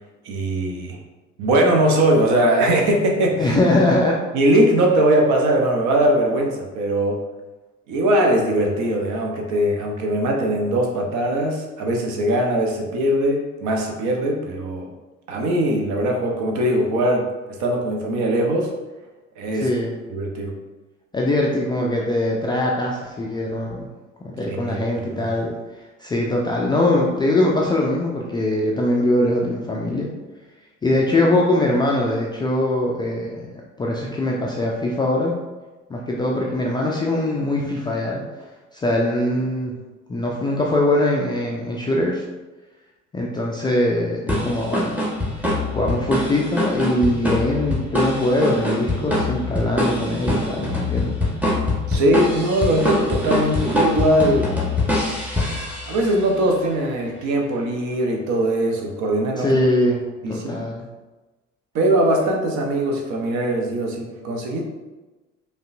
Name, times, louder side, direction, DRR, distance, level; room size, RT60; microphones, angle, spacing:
voice 1, 0.2-1.0 1.4-3.6 4.3-7.2 7.9-14.9 15.3-17.3 17.6-18.7 19.4-19.7 20.1-20.5 24.5-25.3 51.9-54.5 55.9-59.6 60.2-60.6 61.7-64.7, right 1 dB, 50° right, 1 dB, 0.8 m, -20 dB
voice 2, 3.4-4.2 19.5-19.9 21.1-23.9 24.2-25.5 26.0-30.1 30.8-33.5 33.8-35.3 35.9-38.2 38.7-39.7 40.1-42.2 43.1-45.0 45.4-51.1 59.4-60.0 60.3-60.8, left 1 dB, 15° left, -3 dB, 0.3 m, -22 dB
sound 1, 44.3-56.2, left 1 dB, 5° right, 1.0 m, -24 dB
5.1 x 2.3 x 2.5 m, 1.2 s
figure-of-eight pair, 60°, 38 cm